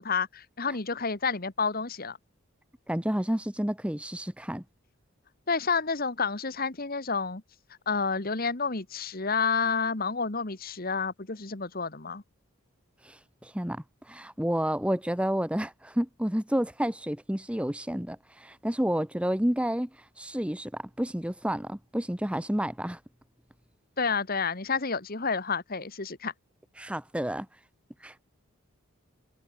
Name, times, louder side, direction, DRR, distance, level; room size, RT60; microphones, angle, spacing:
voice 1, 0.0-2.2 5.5-7.4 7.9-12.2 24.0-26.3, left 5 dB, 40° left, 1.4 m, -29 dB
voice 2, 2.9-4.6 13.0-19.9 20.2-23.0 26.8-27.5 28.0-28.2, equal, 5° right, 1.0 m, -30 dB
head